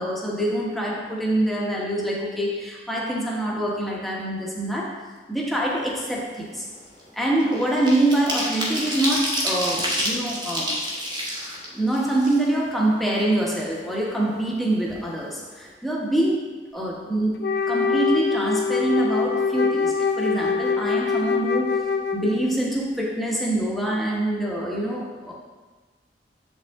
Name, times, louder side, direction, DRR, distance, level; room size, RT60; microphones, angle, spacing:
voice 1, 0.0-5.0 5.3-6.7 7.2-10.8 11.7-17.4 17.7-25.3, right 1 dB, ahead, -4 dB, 1.0 m, -25 dB
sound 1, 5.8-6.0 6.4-12.8 13.2-13.3 13.6-14.6 14.9-15.0 15.3-15.6, equal, 25° right, 1.3 m, -29 dB
Wind instrument woodwind instrument, 17.4-22.6, left 5 dB, 65° left, 0.5 m, -24 dB
7.5 x 5.5 x 3.6 m, 1.3 s
head